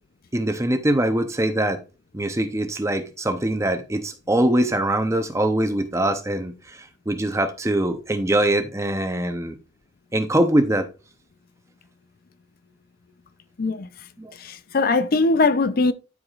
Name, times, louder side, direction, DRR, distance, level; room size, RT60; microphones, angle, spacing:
voice 1, 0.3-1.8 2.1-6.5 7.1-9.6 10.1-10.9 14.2-14.3, right 1 dB, 15° right, 0.7 m, -22 dB
voice 2, 14.4-15.9, left 3 dB, 50° left, 0.4 m, -20 dB
12.5 x 4.8 x 2.4 m
head